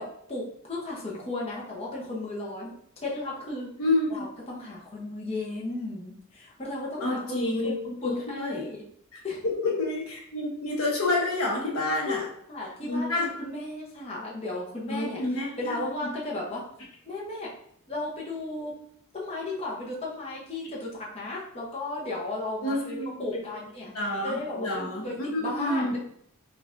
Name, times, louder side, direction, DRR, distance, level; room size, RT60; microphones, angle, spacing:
voice 1, 0.3-2.7 3.0-3.7 4.1-7.2 7.6-7.7 8.0-8.8 9.2-9.4 12.1-15.2 15.6-16.6 17.1-17.5 17.9-18.7 19.1-23.9 24.2-26.0, left 2 dB, 30° left, -4 dB, 0.7 m, -35 dB
voice 2, 3.8-4.3 7.0-8.6 9.1-9.2 9.6-12.3 12.8-13.3 14.9-15.8 22.6-23.4 23.9-26.0, left 2 dB, 75° left, -1 dB, 0.9 m, -29 dB
5.1 x 2.4 x 2.5 m, 0.68 s
head